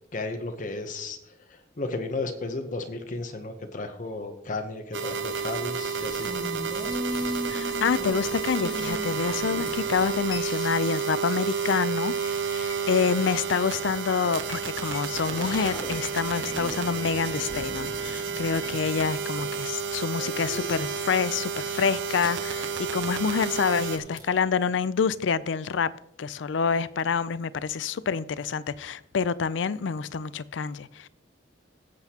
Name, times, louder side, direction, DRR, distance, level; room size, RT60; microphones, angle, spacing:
voice 1, 0.1-1.2 1.8-6.3, left 2 dB, 40° left, 0.8 m, -33 dB
sound 1, 4.9-24.0, right 6 dB, 75° right, 0.9 m, -31 dB
sound 2, 5.3-24.4, left 1 dB, 25° left, 1.8 m, -40 dB
voice 2, 7.5-25.9 26.2-31.1, left 6 dB, 75° left, 0.4 m, -27 dB
17.5 x 7.9 x 2.9 m
head